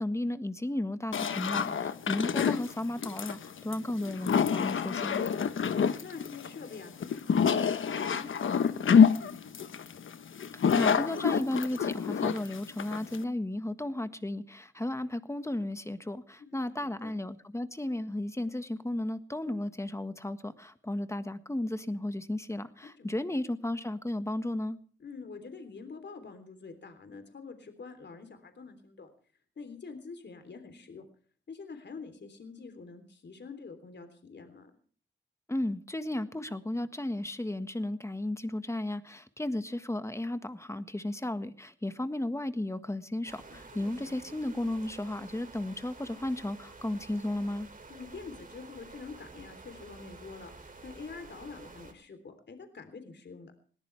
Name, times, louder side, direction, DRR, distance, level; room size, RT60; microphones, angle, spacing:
voice 1, 0.0-5.3 10.5-24.8 35.5-47.7, left 1 dB, 15° left, 10 dB, 1.5 m, -34 dB
sound 1, 1.1-13.2, left 7 dB, 90° left, 1.1 m, -27 dB
voice 2, 5.4-9.7 16.4-17.1 22.8-23.1 25.0-29.1 29.5-31.0 31.5-34.7 43.5-44.2 47.9-53.6, left 4 dB, 65° left, 8 dB, 3.4 m, -46 dB
sound 2, 43.2-51.9, right 3 dB, 45° right, 2.8 m, -50 dB
20.5 x 19.0 x 3.4 m, 0.43 s
wide cardioid pair, 115°, 20 cm